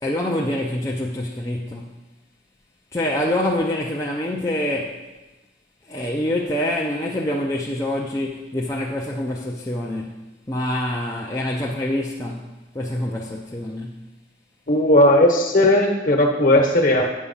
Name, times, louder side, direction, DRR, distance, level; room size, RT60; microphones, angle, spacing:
voice 1, 0.0-1.9 2.9-5.1 5.9-14.0, left 1 dB, 15° left, -2 dB, 0.5 m, -26 dB
voice 2, 14.7-17.0, left 1 dB, 45° left, 2 dB, 1.2 m, -16 dB
8.5 x 6.0 x 5.5 m, 1.1 s
head